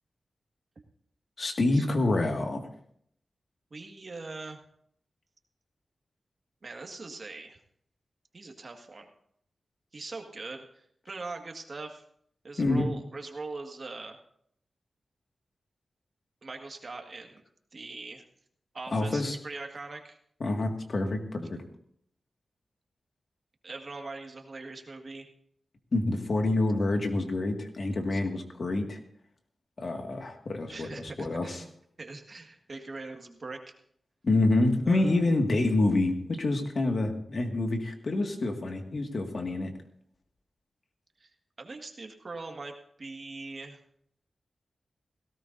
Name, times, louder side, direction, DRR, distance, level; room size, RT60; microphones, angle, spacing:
voice 1, 1.4-2.6 12.6-12.9 18.9-19.4 20.4-21.6 25.9-29.0 29.8-30.9 31.2-31.6 34.2-39.7, left 2 dB, 55° left, 3 dB, 2.0 m, -27 dB
voice 2, 3.7-4.6 6.6-7.6 8.3-9.1 9.9-12.0 12.4-14.2 16.4-17.4 17.7-18.2 18.7-20.2 23.6-25.3 28.1-28.2 30.7-31.7 32.0-33.6 34.9-35.4 41.2-41.3 41.6-43.8, right 3 dB, 50° right, 3 dB, 1.8 m, -41 dB
17.5 x 17.5 x 2.7 m, 0.67 s
wide cardioid pair, 90°, 0 cm